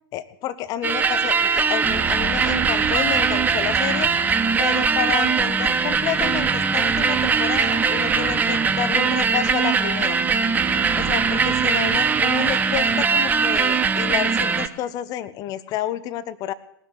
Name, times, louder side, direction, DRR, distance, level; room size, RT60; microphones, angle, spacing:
voice 1, 0.1-4.1 4.6-10.2 10.9-16.5, left 12 dB, 30° left, 17 dB, 0.6 m, -29 dB
sound 1, 0.8-14.7, right 5 dB, 15° right, 0.6 m, -21 dB
sound 2, 2.1-10.8, left 5 dB, 60° left, 1.8 m, -43 dB
19.5 x 6.5 x 7.1 m, 0.74 s
figure-of-eight pair, 100°, 13 cm